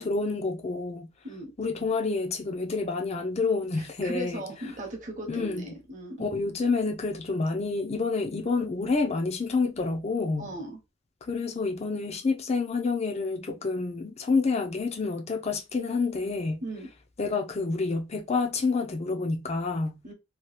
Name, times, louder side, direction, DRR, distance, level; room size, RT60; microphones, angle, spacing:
voice 1, 0.0-1.1 1.6-4.4 5.3-5.6 6.2-10.5 11.2-16.6 17.2-20.0, left 4 dB, 30° left, 0.5 m, -28 dB
voice 2, 3.7-6.3 10.4-10.8 16.6-16.9 20.0-20.1, right 1 dB, 40° right, 0.9 m, -37 dB
2.9 x 2.3 x 3.2 m
head